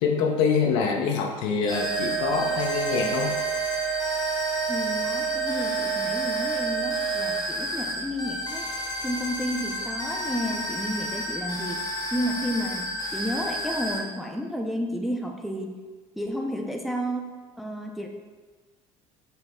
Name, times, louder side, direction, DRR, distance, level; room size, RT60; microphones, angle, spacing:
voice 1, 0.0-3.4, left 5 dB, 75° left, 2 dB, 0.6 m, -25 dB
sound 1, 1.7-14.0, left 1 dB, 25° left, 0.9 m, -32 dB
sound 2, 1.7-7.7, right 9 dB, 85° right, 0.5 m, -29 dB
voice 2, 4.7-8.7 9.0-15.7 16.1-17.3 17.6-18.1, equal, ahead, 1 dB, 0.5 m, -31 dB
5.5 x 2.0 x 3.5 m, 1.4 s
hypercardioid pair, 75°, 16 cm